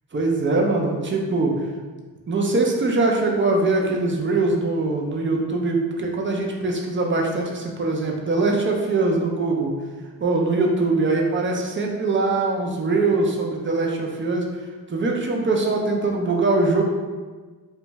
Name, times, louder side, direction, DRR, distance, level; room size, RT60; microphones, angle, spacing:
voice 1, 0.1-1.5 2.3-9.7 10.2-14.5 14.9-16.8, right 3 dB, 30° right, 0 dB, 0.4 m, -22 dB
2.5 x 2.2 x 3.0 m, 1.4 s
cardioid pair, 80°, 43 cm